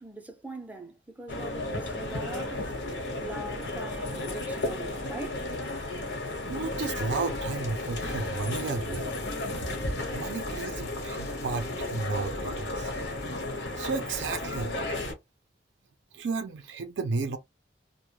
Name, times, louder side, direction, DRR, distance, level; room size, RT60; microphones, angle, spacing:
voice 1, 0.0-5.5, right 2 dB, 10° right, 0.4 m, -42 dB
sound 1, 1.3-15.1, left 2 dB, 80° left, 0.9 m, -33 dB
voice 2, 6.5-9.1 10.1-12.9 13.8-14.8 16.1-17.4, right 4 dB, 90° right, 0.4 m, -33 dB
sound 2, 6.6-13.4, left 2 dB, 60° left, 0.7 m, -48 dB
2.2 x 2.1 x 3.0 m
head